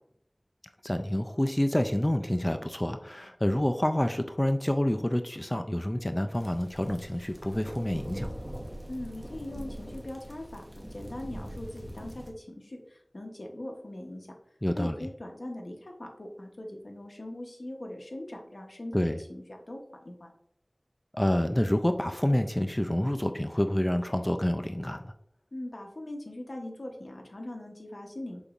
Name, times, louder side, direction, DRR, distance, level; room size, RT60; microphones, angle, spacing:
voice 1, 0.8-8.3 14.6-14.9 18.9-19.2 21.1-25.1, left 1 dB, 25° left, 7 dB, 0.3 m, -28 dB
sound 1, 6.3-12.3, equal, 10° right, 0.8 m, -42 dB
voice 2, 8.9-14.4 14.7-19.8 20.0-20.3 25.5-28.4, left 1 dB, 80° left, 2 dB, 0.8 m, -41 dB
5.2 x 3.9 x 2.4 m, 0.73 s
wide cardioid pair, 40°, 0 cm